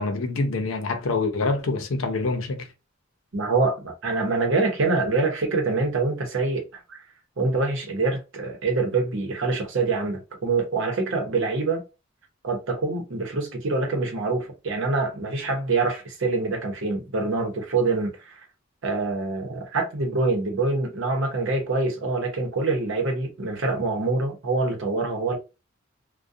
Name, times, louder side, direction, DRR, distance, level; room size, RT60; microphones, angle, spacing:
voice 1, 0.0-2.7, left 3 dB, 85° left, 0.6 m, -26 dB
voice 2, 3.3-6.6 6.9-7.0 7.4-11.8 12.4-18.3 18.8-25.4, right 3 dB, 70° right, 0.8 m, -25 dB
2.4 x 2.2 x 2.6 m
head